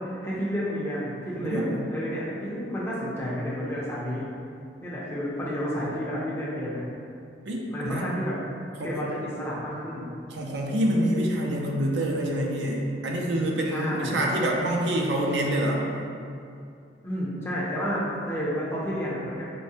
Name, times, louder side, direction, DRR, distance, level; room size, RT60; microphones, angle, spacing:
voice 1, 0.0-1.6 1.9-4.2 4.8-6.8 7.7-8.3 8.8-10.1 13.7-14.3 17.0-19.4, equal, 15° left, -8 dB, 0.5 m, -30 dB
voice 2, 1.4-1.8 7.5-8.1 8.8-8.9 10.3-15.8, right 1 dB, 70° right, -1 dB, 0.4 m, -26 dB
4.6 x 2.1 x 2.7 m, 2.5 s
head